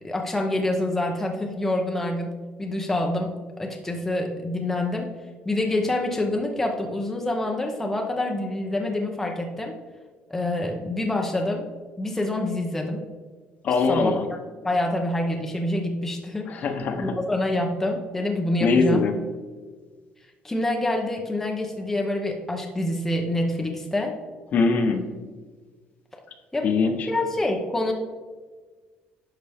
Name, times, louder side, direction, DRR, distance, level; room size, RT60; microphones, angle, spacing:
voice 1, 0.0-2.3 2.6-5.1 5.4-9.7 10.3-11.7 12.0-13.0 13.9-14.1 14.6-16.6 17.0-19.0 20.4-24.1 26.5-26.7 27.1-27.9, left 1 dB, 10° left, 1 dB, 0.6 m, -26 dB
voice 2, 13.6-14.2 16.5-17.1 18.6-19.1 24.5-25.1 26.6-27.1, left 4 dB, 45° left, 6 dB, 0.9 m, -22 dB
10.5 x 5.7 x 3.5 m, 1.4 s
cardioid pair, 165°, 4 cm